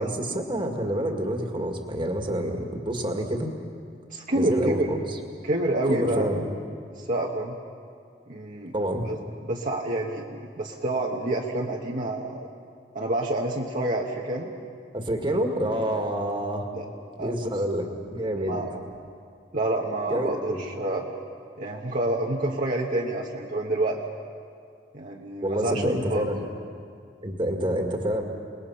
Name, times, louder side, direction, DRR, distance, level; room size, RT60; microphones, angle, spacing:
voice 1, 0.0-3.5 4.3-5.2 5.9-6.4 8.7-9.1 14.9-16.7 17.2-18.6 20.1-20.6 25.4-26.4 27.2-28.2, right 1 dB, 25° right, 3 dB, 2.0 m, -27 dB
voice 2, 4.1-4.9 5.4-6.3 6.9-7.6 8.3-8.7 9.0-9.2 9.4-12.5 12.9-14.5 16.7-16.9 17.2-17.6 18.3-18.7 19.5-21.1 21.6-24.0 24.9-26.2, right 1 dB, 50° right, -1 dB, 1.3 m, -28 dB
29.0 x 20.0 x 5.8 m, 2.2 s
head